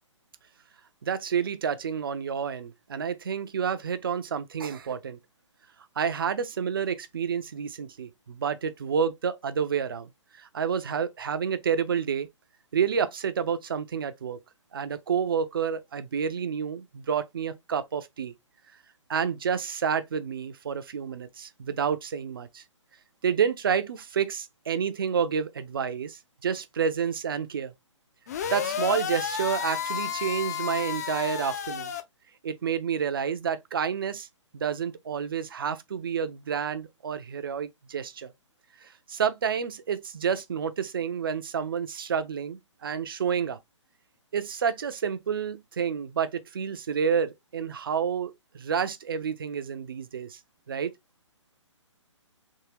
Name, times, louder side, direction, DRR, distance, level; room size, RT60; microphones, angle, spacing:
voice 1, 1.0-5.2 6.0-10.1 10.4-12.3 12.7-14.4 14.7-18.3 19.1-22.6 23.2-27.7 28.5-31.9 32.4-34.3 34.5-38.3 38.8-43.6 44.3-50.4 50.7-50.9, right 7 dB, 45° right, 0.5 m, -29 dB
sound 1, 28.3-32.0, left 8 dB, 30° left, 0.4 m, -31 dB
3.6 x 2.7 x 2.9 m
figure-of-eight pair, 135°, 16 cm